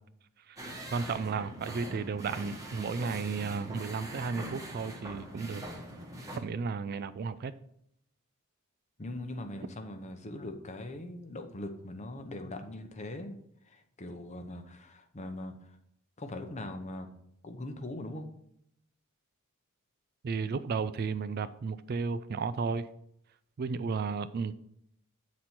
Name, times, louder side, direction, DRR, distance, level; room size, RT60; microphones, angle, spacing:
sound 1, 0.6-6.4, right 1 dB, 15° right, 1.1 m, -43 dB
voice 1, 0.9-5.6 6.3-7.5 20.2-22.8 23.6-24.5, right 5 dB, 45° right, 14 dB, 0.3 m, -33 dB
voice 2, 9.0-13.4 13.6-15.8 16.2-17.1 17.4-18.3, left 1 dB, 35° left, 6 dB, 0.7 m, -41 dB
7.8 x 4.2 x 4.3 m, 0.73 s
head